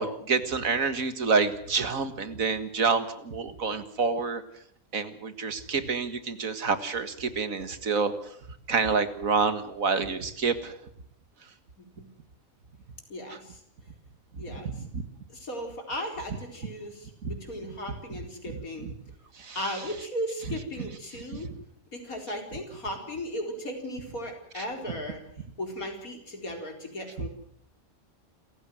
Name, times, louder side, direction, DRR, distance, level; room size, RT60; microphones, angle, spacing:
voice 1, 0.0-4.4 4.9-8.1 8.7-10.7 14.9-15.0 17.2-17.3 18.5-18.9 19.4-19.6, right 5 dB, 70° right, 11 dB, 2.1 m, -28 dB
voice 2, 13.1-13.6 14.4-14.7 15.3-18.9 19.5-21.5 21.9-25.2 25.6-27.3, left 1 dB, 75° left, 4 dB, 4.7 m, -36 dB
28.0 x 15.0 x 7.8 m, 0.68 s
omnidirectional pair, 1.5 m